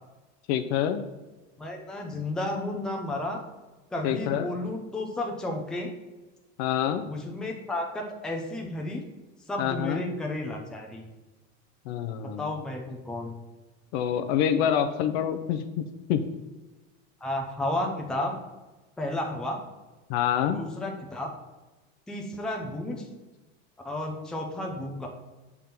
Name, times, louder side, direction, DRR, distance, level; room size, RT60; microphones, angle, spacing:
voice 1, 0.5-1.0 4.0-4.5 6.6-7.0 9.6-10.0 11.9-12.5 13.9-16.2 20.1-20.6, left 9 dB, 65° left, 8 dB, 0.6 m, -26 dB
voice 2, 1.6-3.4 3.9-5.9 7.0-9.0 9.5-11.0 12.2-13.4 17.2-18.4 19.0-19.6 20.5-21.3 22.1-23.1 23.8-25.1, left 1 dB, ahead, 1 dB, 0.6 m, -32 dB
7.0 x 3.6 x 5.8 m, 1.2 s
cardioid pair, 165°, 33 cm